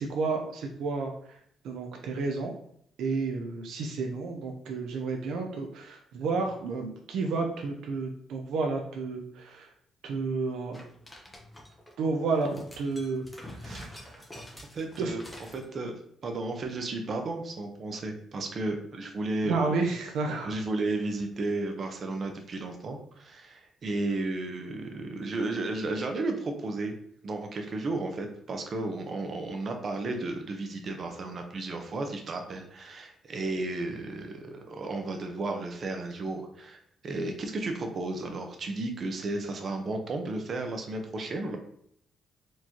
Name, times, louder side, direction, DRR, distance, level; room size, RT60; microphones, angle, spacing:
voice 1, 0.0-1.4 1.6-2.5 3.0-9.7 10.0-10.8 12.0-14.2 15.0-15.2 19.4-20.6, right 4 dB, 80° right, 2 dB, 0.5 m, -31 dB
sound 1, 10.7-11.9 12.4-15.6, equal, 10° left, 0.9 m, -46 dB
voice 2, 14.7-15.2 15.5-16.0 16.2-19.8 20.4-26.9 27.2-41.6, right 2 dB, 50° right, 4 dB, 0.7 m, -33 dB
4.4 x 3.0 x 2.8 m, 0.68 s
cardioid pair, 90°, 0 cm